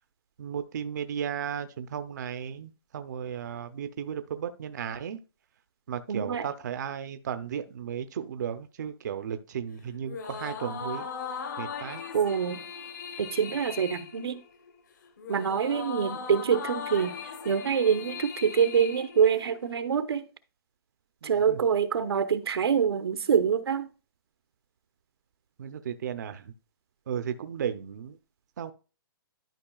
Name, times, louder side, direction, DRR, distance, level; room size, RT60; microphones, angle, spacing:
voice 1, 0.4-5.2 5.9-11.1 11.6-12.0 21.2-21.6 25.6-26.5 27.1-28.2 28.6-28.7, right 8 dB, 45° right, 0.5 m, -35 dB
voice 2, 6.1-6.4 12.1-12.6 13.2-14.4 15.3-17.2 17.4-20.2 21.2-23.9, right 7 dB, 90° right, 0.9 m, -25 dB
sound 1, 10.0-19.8, left 6 dB, 50° left, 1.1 m, -39 dB
12.0 x 5.2 x 2.3 m
hypercardioid pair, 175°, 13 cm